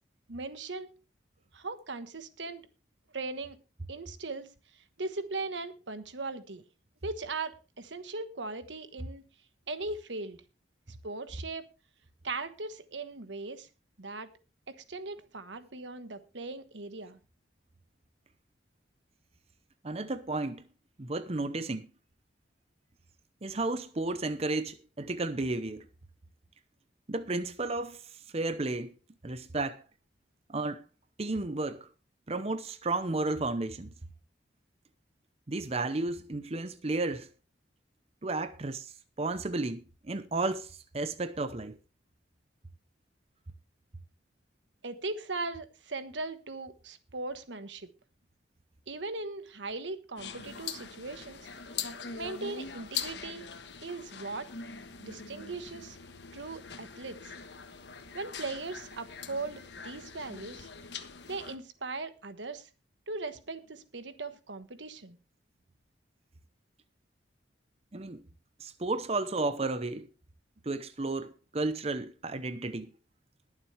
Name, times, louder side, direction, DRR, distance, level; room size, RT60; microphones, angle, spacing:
voice 1, 0.3-0.9 1.5-2.7 3.1-3.6 3.9-4.5 5.0-6.6 7.0-9.2 9.7-10.4 11.0-11.6 12.2-13.7 14.0-14.3 14.7-17.2 44.8-47.9 48.9-51.5 52.1-53.5 53.8-54.5 55.0-56.0 56.3-57.3 58.1-60.7 61.2-62.7 63.1-65.2, right 3 dB, 85° right, 1.3 m, -39 dB
voice 2, 19.8-20.6 21.0-21.9 23.4-25.9 27.1-28.0 28.3-29.0 29.2-29.8 30.5-30.8 31.2-31.9 32.3-33.9 35.5-37.3 38.2-38.9 39.2-41.8 67.9-68.2 68.6-70.1 70.6-72.9, right 2 dB, 35° right, 0.7 m, -33 dB
sound 1, 50.2-61.5, left 6 dB, 70° left, 1.3 m, -42 dB
21.0 x 7.3 x 3.3 m
head